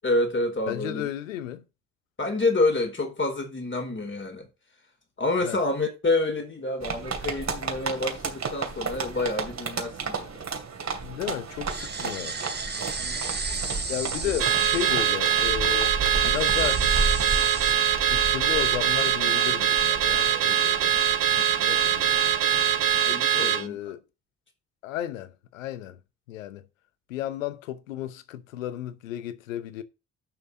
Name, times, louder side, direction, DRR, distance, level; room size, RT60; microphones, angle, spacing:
voice 1, 0.0-1.1 2.2-4.5 5.2-10.3 13.0-13.2 23.1-23.8, left 2 dB, 30° left, 4.1 m, -28 dB
voice 2, 0.7-1.6 5.4-5.6 11.0-12.4 13.9-16.9 18.0-20.9 21.3-22.1 23.3-24.0 24.8-26.0 26.3-26.7 27.1-29.8, left 12 dB, 85° left, 0.8 m, -34 dB
sound 1, 6.8-23.1, right 4 dB, 45° right, 2.7 m, -33 dB
sound 2, 11.7-17.7, right 4 dB, 25° right, 1.9 m, -35 dB
Car / Alarm, 14.4-23.7, right 9 dB, 60° right, 1.3 m, -23 dB
10.5 x 5.8 x 4.0 m
hypercardioid pair, 45°, 38 cm